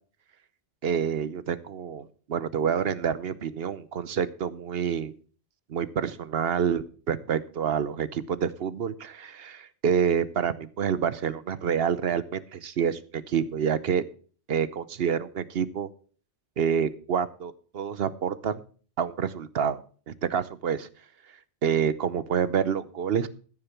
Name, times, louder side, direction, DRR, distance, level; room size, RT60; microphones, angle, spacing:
voice 1, 0.8-5.1 5.7-14.0 14.5-15.9 16.6-18.6 19.0-20.9 21.6-23.3, right 7 dB, 65° right, 15 dB, 1.0 m, -28 dB
14.0 x 6.7 x 6.0 m, 0.41 s
omnidirectional pair, 1.1 m